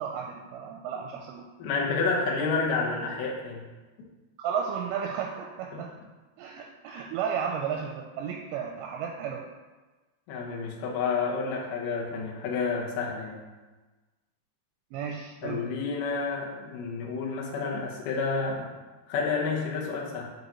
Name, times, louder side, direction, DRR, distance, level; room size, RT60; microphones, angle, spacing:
voice 1, 0.0-1.5 4.4-5.9 6.4-9.4 14.9-15.6, right 7 dB, 85° right, 2 dB, 2.7 m, -33 dB
voice 2, 1.6-3.7 5.7-5.8 10.3-13.4 15.4-18.7 19.1-20.3, left 4 dB, 85° left, -2 dB, 1.8 m, -30 dB
8.1 x 5.5 x 3.0 m, 1.2 s
omnidirectional pair, 5.3 m